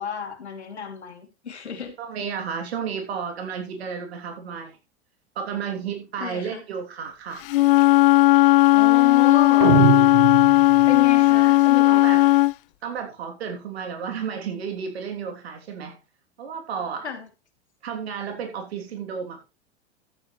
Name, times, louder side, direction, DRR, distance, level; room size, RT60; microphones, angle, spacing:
voice 1, 0.0-2.0 6.2-6.6 8.7-9.7 10.0-10.1 10.9-12.3 17.0-17.3, left 7 dB, 75° left, 3.0 m, -31 dB
voice 2, 2.0-4.8 5.3-7.4 11.9-12.2 12.8-16.0 16.4-17.0 17.8-19.4, right 6 dB, 65° right, 3.2 m, -32 dB
Wind instrument woodwind instrument, 7.5-12.5, left 17 dB, 55° left, 0.5 m, -16 dB
sound 1, 9.6-11.1, right 17 dB, 50° right, 1.1 m, -23 dB
14.0 x 9.0 x 3.3 m
figure-of-eight pair, 90°, 33 cm